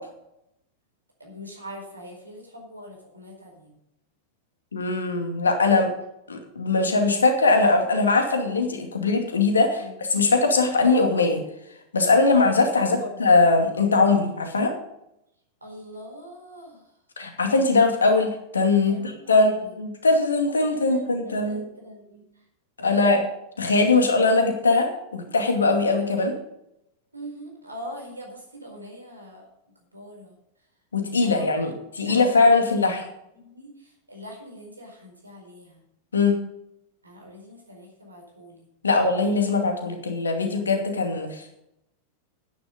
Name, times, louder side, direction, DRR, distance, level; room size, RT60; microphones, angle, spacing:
voice 1, 1.2-3.8 9.8-9.9 12.7-13.2 15.6-16.9 18.8-19.7 20.9-22.3 27.1-29.5 29.9-30.4 31.2-32.6 33.3-35.8 37.0-38.7, equal, 80° right, 1 dB, 4.5 m, -42 dB
voice 2, 4.7-5.9 6.3-9.8 10.1-11.4 11.9-14.7 17.2-19.0 19.3-21.6 22.8-23.2 23.6-26.4 30.9-33.0 36.1-36.4 38.8-41.7, left 3 dB, 70° left, 4 dB, 2.4 m, -21 dB
11.0 x 10.0 x 5.2 m, 0.81 s
figure-of-eight pair, 90°, 0 cm